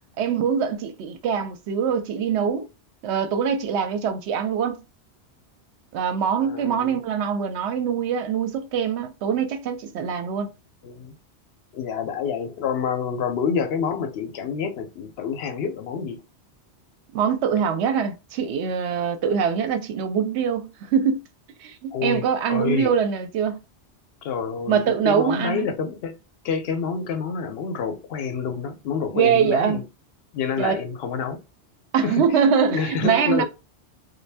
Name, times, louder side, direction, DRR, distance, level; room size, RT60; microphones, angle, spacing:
voice 1, 0.2-2.7 3.0-4.8 5.9-10.5 17.1-21.2 21.6-23.6 24.7-25.7 29.1-29.8 30.6-30.8 31.9-33.4, right 7 dB, 75° right, 0.8 m, -23 dB
voice 2, 6.4-7.0 10.8-11.1 11.7-16.2 21.9-22.9 24.2-26.2 26.4-29.8 30.3-31.4 32.0-32.2 32.6-33.4, left 6 dB, 65° left, 0.8 m, -28 dB
2.5 x 2.2 x 3.3 m
omnidirectional pair, 1.2 m